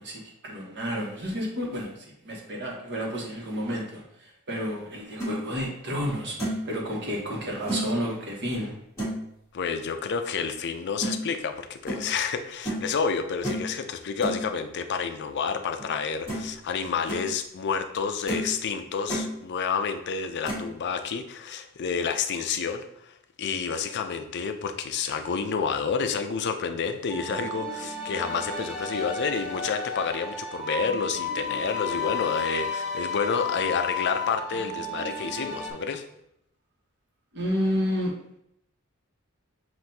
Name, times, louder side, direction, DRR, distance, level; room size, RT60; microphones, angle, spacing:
voice 1, 0.0-8.7 37.3-38.1, equal, 50° right, -2 dB, 1.2 m, -31 dB
sound 1, 4.9-5.3 5.9-6.0 6.4-6.7 7.7-7.9 9.0-9.2 11.0-11.1 11.9-12.1 12.6-12.9 13.4-13.7 14.2-14.4 15.8-15.9 16.3-16.6 16.9-17.2 17.8-17.9 18.3-18.5 18.8-19.3 20.4-20.7, right 1 dB, 15° left, 1.6 m, -30 dB
voice 2, 9.5-22.9 23.4-36.0, left 6 dB, 50° left, 7 dB, 0.4 m, -29 dB
sound 2, 27.1-35.7, left 3 dB, 5° right, 0.9 m, -32 dB
7.5 x 2.6 x 2.7 m, 0.76 s
head